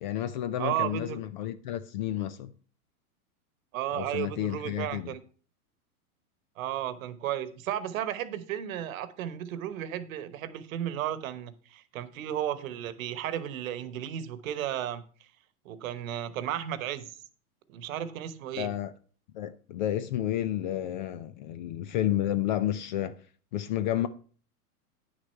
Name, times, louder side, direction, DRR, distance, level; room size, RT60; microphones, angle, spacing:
voice 1, 0.0-2.5 3.9-5.1 18.6-18.9 19.3-23.2 23.5-24.1, left 12 dB, 35° left, 0.4 m, -31 dB
voice 2, 0.6-1.2 3.7-5.2 6.6-15.0 15.6-17.1 17.7-18.7, right 11 dB, 60° right, 1.2 m, -34 dB
9.6 x 6.4 x 4.5 m
hypercardioid pair, 130°, 45 cm